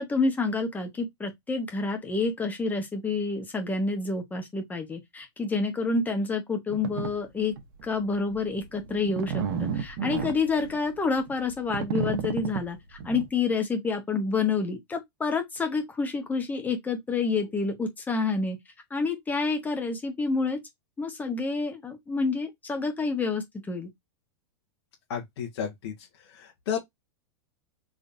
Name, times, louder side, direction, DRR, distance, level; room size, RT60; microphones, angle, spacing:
voice 1, 0.0-7.5 7.8-18.6 18.9-20.6 21.0-23.9, left 4 dB, 10° left, 1.1 m, -28 dB
sound 1, 6.7-7.1 7.6-7.8 8.3-13.3, right 6 dB, 55° right, 1.1 m, -32 dB
voice 2, 25.1-25.9 26.3-26.8, left 8 dB, 60° left, 1.5 m, -32 dB
3.8 x 3.2 x 2.6 m
hypercardioid pair, 135°, 14 cm